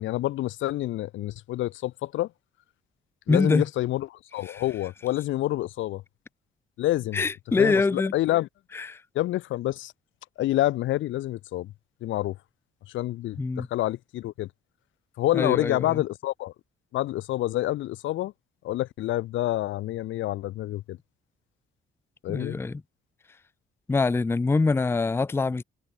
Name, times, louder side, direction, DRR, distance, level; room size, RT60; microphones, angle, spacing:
voice 1, 0.0-2.3 3.3-6.0 6.8-7.2 7.6-8.5 9.1-9.9 10.4-11.7 12.0-12.4 12.9-14.5 15.2-16.5 16.9-18.3 18.6-21.0 22.2-22.6, left 15 dB, 90° left, 1.3 m, -28 dB
voice 2, 3.3-3.6 4.5-4.6 7.1-8.1 8.7-9.0 13.4-13.7 15.3-16.0 22.3-22.8 23.9-25.6, left 3 dB, 10° left, 0.6 m, -24 dB
cardioid pair, 150°, 19 cm